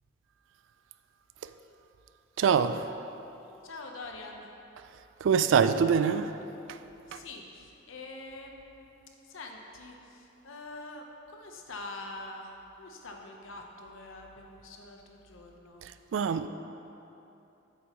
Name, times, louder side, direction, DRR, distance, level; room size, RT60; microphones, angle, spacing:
voice 1, 2.4-3.0 4.9-6.8 7.1-7.2 15.8-16.5, right 6 dB, 70° right, 0.3 m, -26 dB
voice 2, 3.6-4.5 7.1-8.9 9.2-15.8, left 2 dB, 85° left, 0.9 m, -45 dB
8.2 x 8.1 x 3.0 m
head